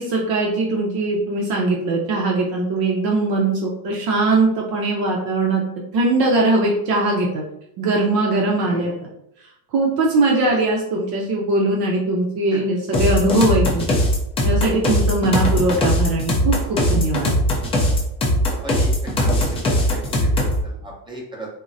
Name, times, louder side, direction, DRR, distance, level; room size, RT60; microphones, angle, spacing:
voice 1, 0.0-5.6 5.9-7.4 7.8-8.9 9.7-13.9 14.4-17.3, right 2 dB, 50° right, -1 dB, 0.7 m, -20 dB
sound 1, 12.9-20.6, left 1 dB, 15° left, 0.3 m, -19 dB
voice 2, 18.5-21.5, right 1 dB, 10° right, -2 dB, 0.7 m, -36 dB
3.6 x 2.1 x 2.5 m, 0.79 s
supercardioid pair, 120°, 49 cm